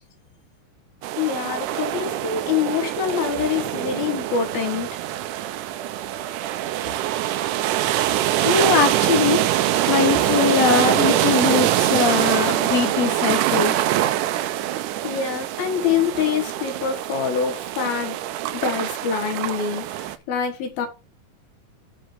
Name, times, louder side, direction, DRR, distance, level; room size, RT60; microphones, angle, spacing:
sound 1, 1.0-20.2, right 13 dB, 85° right, 1.8 m, -24 dB
voice 1, 1.2-4.9 13.7-13.8 14.7-18.2 18.6-20.9, left 7 dB, 75° left, 3.5 m, -25 dB
voice 2, 8.4-9.4 9.9-13.8, left 6 dB, 60° left, 2.0 m, -21 dB
7.5 x 4.8 x 5.3 m
omnidirectional pair, 4.3 m